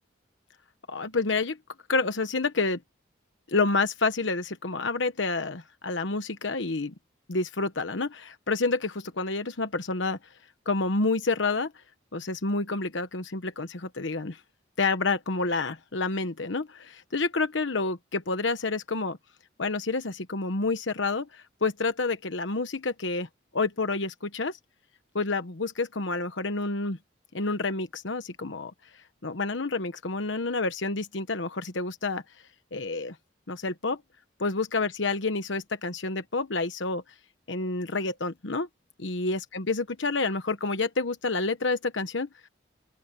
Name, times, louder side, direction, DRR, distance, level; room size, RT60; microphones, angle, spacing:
voice 1, 0.9-1.6 1.9-2.8 3.5-6.9 7.3-10.2 10.7-11.7 12.1-14.4 14.8-19.2 19.6-23.3 23.5-24.6 25.1-27.0 27.3-32.2 32.7-33.2 33.5-34.0 34.4-37.0 37.5-38.7 39.0-42.5, left 3 dB, 80° left, 1.1 m, -29 dB
open air
head